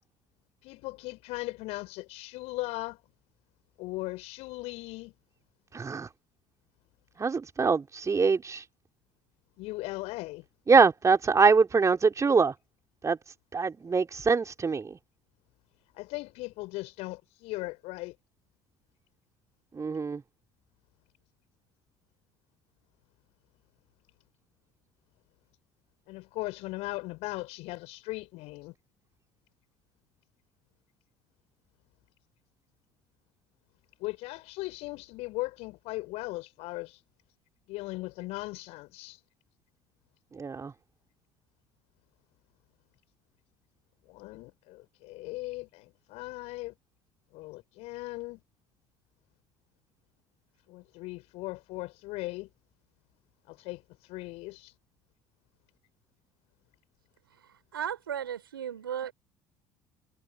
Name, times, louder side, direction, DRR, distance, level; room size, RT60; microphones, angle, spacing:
voice 1, 0.6-3.0 3.8-5.1 9.6-10.5 15.9-18.2 26.1-28.7 34.0-37.0 37.7-39.2 44.1-46.7 47.3-48.4 50.7-52.5 53.5-54.7, left 21 dB, 60° left, 7.0 m, -38 dB
voice 2, 5.7-6.1 7.2-8.6 10.7-12.5 13.0-13.2 13.5-14.8 19.8-20.2 40.4-40.7, right 5 dB, 25° right, 3.8 m, -23 dB
voice 3, 57.4-59.1, right 9 dB, 80° right, 5.2 m, -36 dB
figure-of-eight pair, 55°, 12 cm